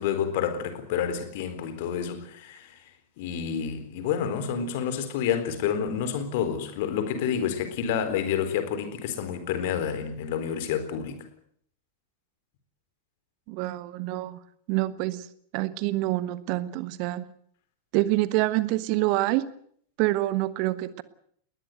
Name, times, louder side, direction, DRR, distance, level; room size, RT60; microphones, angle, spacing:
voice 1, 0.0-2.8 3.2-11.3, left 8 dB, 50° left, 4.0 m, -29 dB
voice 2, 13.5-14.4 14.7-15.3 15.5-17.3 17.9-19.4 20.0-21.0, right 17 dB, 45° right, 1.4 m, -26 dB
20.0 x 20.0 x 8.0 m
figure-of-eight pair, 90°, 0 cm